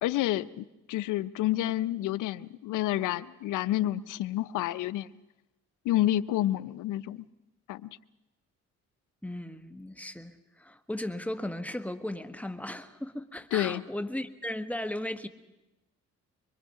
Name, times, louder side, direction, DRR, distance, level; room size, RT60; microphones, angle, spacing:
voice 1, 0.0-5.1 5.8-7.2 7.7-7.9 13.5-13.8, left 14 dB, 85° left, 0.7 m, -29 dB
voice 2, 9.2-15.3, left 1 dB, 5° left, 1.3 m, -36 dB
25.0 x 23.0 x 5.7 m
cardioid pair, 90°, 30 cm